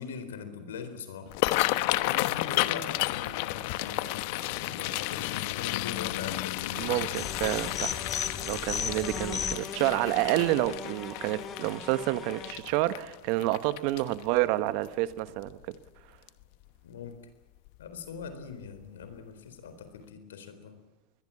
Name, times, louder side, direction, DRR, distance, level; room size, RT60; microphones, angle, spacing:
voice 1, 0.0-1.4 1.8-6.9 16.8-17.2 17.8-20.8, left 6 dB, 85° left, 4.2 m, -41 dB
sound 1, 1.3-14.4 14.9-15.1 15.5-15.9 16.3-16.4 17.7-17.9 18.2-18.3 18.8-18.9, left 19 dB, 65° left, 1.0 m, -32 dB
voice 2, 6.8-8.0 8.4-15.7, right 16 dB, 60° right, 1.4 m, -29 dB
sound 2, 7.1-12.5, left 7 dB, 35° left, 2.4 m, -36 dB
22.0 x 21.5 x 8.7 m
hypercardioid pair, 95°, 0 cm